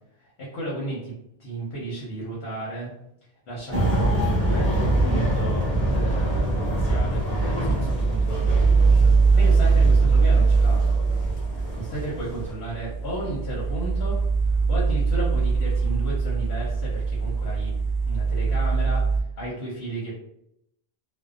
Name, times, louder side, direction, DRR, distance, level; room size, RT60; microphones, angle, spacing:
voice 1, 0.2-1.1 1.4-2.9 3.5-8.5 9.3-10.8 11.9-14.2 14.5-17.7 18.0-19.0 19.4-20.2, right 1 dB, 80° left, -5 dB, 1.1 m, -33 dB
sound 1, 3.7-12.5, right 1 dB, 15° left, 1.1 m, -25 dB
sound 2, 6.5-19.2, right 4 dB, 50° left, 0.5 m, -22 dB
2.6 x 2.1 x 2.4 m, 0.76 s
omnidirectional pair, 1.1 m